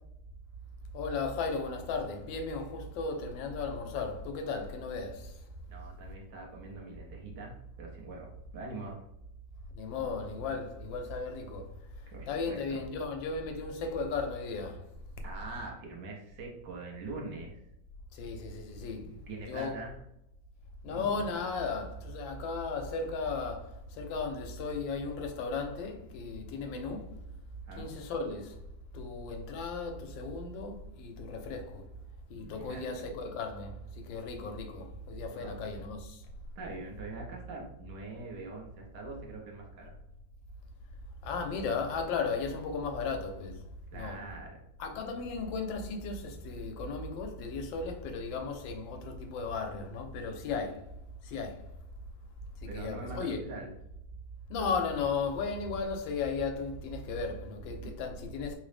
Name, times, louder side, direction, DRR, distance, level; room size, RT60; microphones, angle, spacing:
voice 1, 0.9-5.4 9.7-11.7 12.3-14.9 18.1-19.1 19.5-19.7 20.8-27.1 27.8-28.6 28.9-31.8 32.3-36.2 41.2-43.6 43.9-44.2 44.8-50.9 51.2-51.7 52.6-53.4 54.5-58.6, left 4 dB, 85° left, 1.3 m, -35 dB
voice 2, 5.7-9.0 12.1-12.8 15.2-17.6 19.0-20.0 20.9-21.2 27.7-27.9 32.4-33.1 35.3-35.7 36.6-39.9 43.9-44.6 52.7-53.7, right 2 dB, 70° right, 1.3 m, -43 dB
3.7 x 2.0 x 3.2 m
omnidirectional pair, 2.0 m